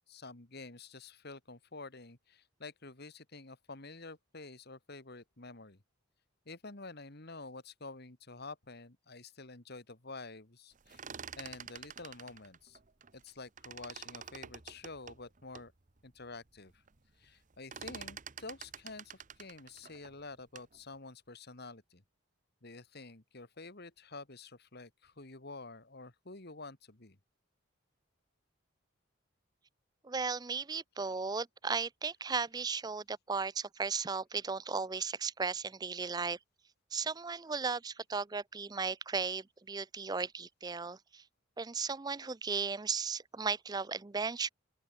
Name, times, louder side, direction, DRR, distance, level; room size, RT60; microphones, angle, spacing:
voice 1, 0.1-5.8 6.5-11.0 11.4-12.8 13.1-15.7 16.0-16.8 17.2-22.0 22.6-27.2, left 3 dB, 50° left, 2.0 m, -49 dB
sound 1, 10.8-13.3 13.6-15.7 16.2-16.3 16.6-17.0 17.2-20.8, right 7 dB, 35° right, 1.0 m, -48 dB
voice 2, 30.0-36.4 36.9-41.2 41.6-44.5, right 5 dB, 20° right, 0.4 m, -36 dB
open air
head